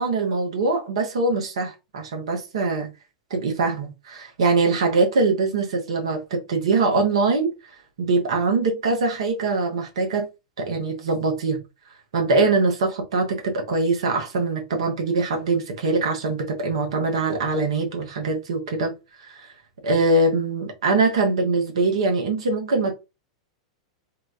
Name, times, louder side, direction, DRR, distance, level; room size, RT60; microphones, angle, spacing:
voice 1, 0.0-2.9 3.3-7.5 8.0-10.3 10.6-11.6 12.1-18.9 19.3-19.4 19.8-22.9, right 3 dB, 65° right, 0.8 m, -23 dB
2.9 x 2.2 x 2.4 m
figure-of-eight pair, 95°, 3 cm